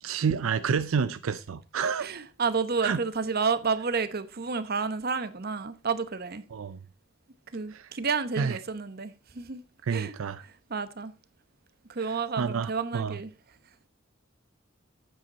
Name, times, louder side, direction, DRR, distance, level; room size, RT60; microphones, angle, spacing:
voice 1, 0.0-2.1 2.8-3.0 6.5-6.8 7.7-7.9 8.4-8.6 9.9-10.4 12.4-13.2, right 6 dB, 85° right, 0.5 m, -29 dB
voice 2, 2.0-6.4 7.5-9.6 9.9-10.1 10.4-11.1 11.9-13.3, right 5 dB, 50° right, 0.9 m, -30 dB
9.1 x 7.9 x 4.1 m
head